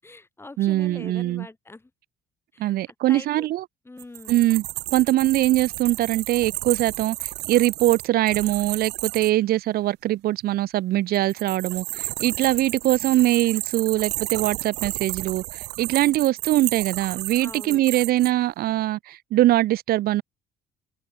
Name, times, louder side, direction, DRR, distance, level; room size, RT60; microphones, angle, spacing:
voice 1, 0.0-1.9 2.5-3.5 3.8-4.4 17.4-17.8, left 2 dB, 15° left, 6.5 m, -43 dB
voice 2, 0.6-1.5 2.6-3.6 4.3-4.6 4.9-7.2 7.5-20.2, right 15 dB, 65° right, 0.6 m, -22 dB
sound 1, 4.0-9.3 11.1-18.3, right 20 dB, 85° right, 1.3 m, -32 dB
cardioid pair, 110°, 17 cm